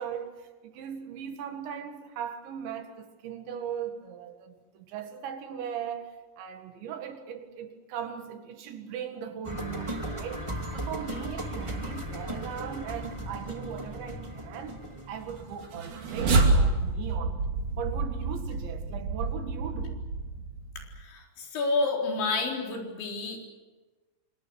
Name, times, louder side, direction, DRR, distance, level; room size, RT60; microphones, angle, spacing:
voice 1, 0.0-10.4 10.7-17.4 17.8-20.1, right 8 dB, 75° right, 4.2 m, -39 dB
sound 1, 9.4-17.4 17.7-17.8, right 1 dB, 20° right, 0.9 m, -37 dB
sound 2, 15.6-21.0, right 3 dB, 45° right, 3.6 m, -28 dB
voice 2, 21.0-23.5, left 3 dB, 75° left, 6.6 m, -29 dB
28.0 x 25.5 x 6.4 m
omnidirectional pair, 5.3 m